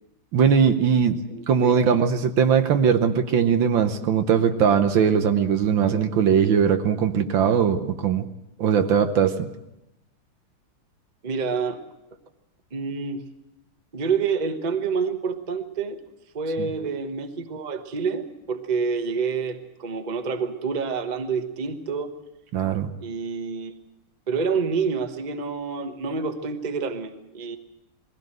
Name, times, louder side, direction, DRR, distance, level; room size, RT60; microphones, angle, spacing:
voice 1, 0.3-1.2 1.5-8.3 8.6-9.5 16.6-16.7 22.5-22.9, right 7 dB, 65° right, 8 dB, 1.7 m, -20 dB
voice 2, 1.3-1.9 11.2-11.8 12.7-13.2 13.9-16.0 16.3-22.1 23.0-23.7 24.3-27.6, right 5 dB, 25° right, 7 dB, 1.0 m, -28 dB
21.0 x 16.5 x 7.7 m, 0.89 s
omnidirectional pair, 2.3 m